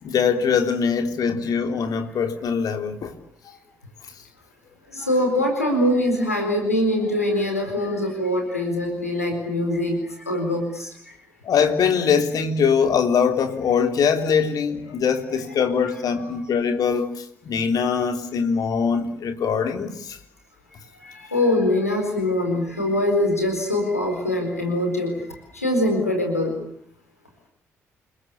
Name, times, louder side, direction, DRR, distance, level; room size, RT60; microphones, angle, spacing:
voice 1, 0.0-3.1 5.0-5.1 11.4-20.2, left 6 dB, 55° left, 6 dB, 3.5 m, -22 dB
voice 2, 4.9-10.0 10.3-10.9 21.3-25.1 25.6-26.5, left 1 dB, 90° left, 3 dB, 4.3 m, -23 dB
29.0 x 22.0 x 8.4 m, 0.64 s
figure-of-eight pair, 40°, 8 cm